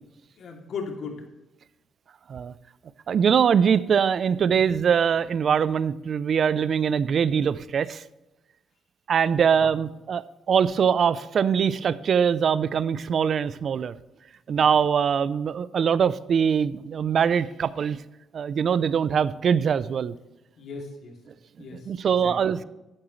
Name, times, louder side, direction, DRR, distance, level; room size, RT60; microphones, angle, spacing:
voice 1, 0.4-1.2 4.4-4.5 9.6-9.7 20.6-21.1 21.6-22.3, left 5 dB, 65° left, 1 dB, 2.7 m, -37 dB
voice 2, 3.1-8.0 9.1-13.9 14.5-18.0 18.3-20.1 21.9-22.6, right 7 dB, 55° right, 16 dB, 0.5 m, -22 dB
13.5 x 8.8 x 3.2 m, 0.99 s
cardioid pair, 90°, 0 cm